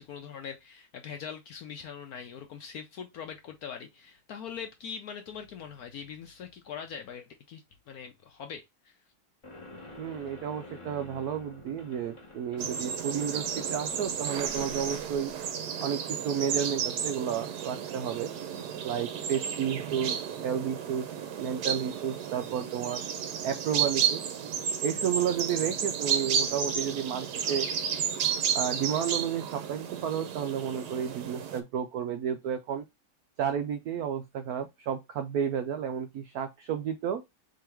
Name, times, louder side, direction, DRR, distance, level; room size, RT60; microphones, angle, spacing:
voice 1, 0.0-8.9, left 7 dB, 75° left, 0.8 m, -42 dB
sound 1, 9.4-15.5, left 2 dB, 40° left, 0.4 m, -49 dB
voice 2, 10.0-15.3 15.8-18.3 18.8-21.1 21.4-23.0 23.4-24.2 24.8-27.7 28.5-32.8 33.4-37.2, right 8 dB, 90° right, 0.8 m, -32 dB
sound 2, 12.6-31.6, right 8 dB, 65° right, 1.1 m, -32 dB
3.7 x 3.0 x 4.4 m
omnidirectional pair, 2.2 m